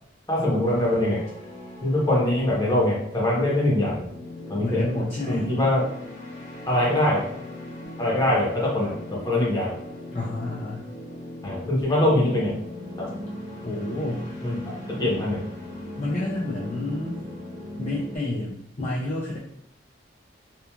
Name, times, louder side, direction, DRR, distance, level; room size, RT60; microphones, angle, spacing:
voice 1, 0.3-1.2 1.8-4.1 4.5-4.8 5.3-5.8 6.7-7.2 8.0-9.7 11.4-12.5 14.4-14.7 15.0-15.4, left 1 dB, 20° left, -5 dB, 0.8 m, -23 dB
sound 1, 0.6-18.2, left 1 dB, 80° left, 1.4 m, -39 dB
voice 2, 4.6-5.5 10.1-10.9 13.6-14.2 16.0-17.2 17.8-19.4, left 1 dB, 35° left, -5 dB, 0.4 m, -29 dB
2.9 x 2.3 x 2.3 m, 0.69 s
head